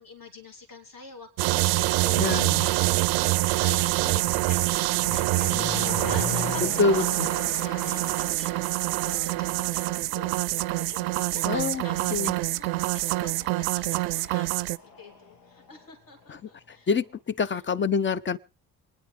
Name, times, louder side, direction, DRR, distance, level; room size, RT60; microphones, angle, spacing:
voice 1, 0.0-2.9 3.3-16.9 17.5-17.6, left 2 dB, 45° left, 3.0 m, -46 dB
sound 1, 1.4-14.8, right 21 dB, 75° right, 0.6 m, -26 dB
Motor vehicle (road), 2.1-2.2 3.0-15.9 16.2-16.3, left 5 dB, 75° left, 1.8 m, -40 dB
voice 2, 2.2-2.6 6.8-7.0 11.5-11.8 12.1-12.3 16.3-16.4 16.9-18.4, left 4 dB, 25° left, 0.7 m, -25 dB
26.5 x 10.0 x 3.3 m
hypercardioid pair, 55°, 46 cm